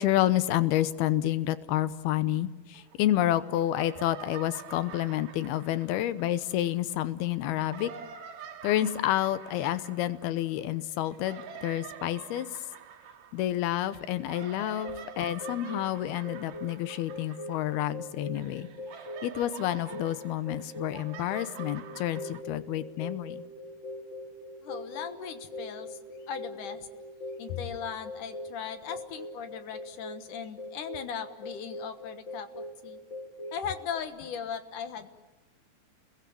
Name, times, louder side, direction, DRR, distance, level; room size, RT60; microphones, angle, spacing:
voice 1, 0.0-7.9 8.6-12.5 13.3-18.7 19.2-23.4, left 13 dB, 85° left, 14 dB, 2.9 m, -29 dB
sound 1, 2.7-3.4 3.7-6.9 7.5-18.1 18.3-22.4, right 8 dB, 65° right, 3.1 m, -47 dB
sound 2, 14.8-34.0, left 1 dB, 35° left, 2.5 m, -42 dB
voice 2, 24.6-26.0 26.2-26.9 27.4-32.5 32.8-33.0 33.5-35.1, left 7 dB, 65° left, 9 dB, 2.6 m, -38 dB
30.0 x 22.0 x 8.6 m, 1.3 s
omnidirectional pair, 4.4 m